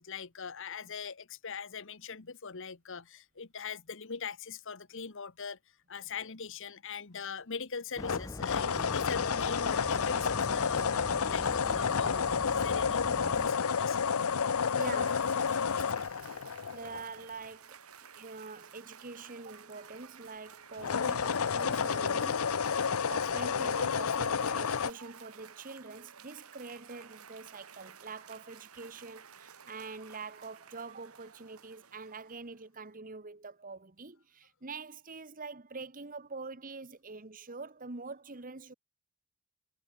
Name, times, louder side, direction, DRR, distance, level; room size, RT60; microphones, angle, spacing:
voice 1, 0.0-5.6 5.9-10.8 11.3-14.1, left 6 dB, 60° left, 1.2 m, -41 dB
sound 1, 8.0-17.3 20.7-24.9, left 6 dB, 80° left, 0.7 m, -30 dB
sound 2, 8.0-13.5, left 1 dB, 15° left, 0.7 m, -42 dB
Cheering / Applause, 14.0-32.6, right 7 dB, 85° right, 2.6 m, -54 dB
voice 2, 14.8-15.3 16.0-16.4 16.7-17.8 18.1-22.5 23.1-38.7, right 4 dB, 40° right, 1.5 m, -45 dB
head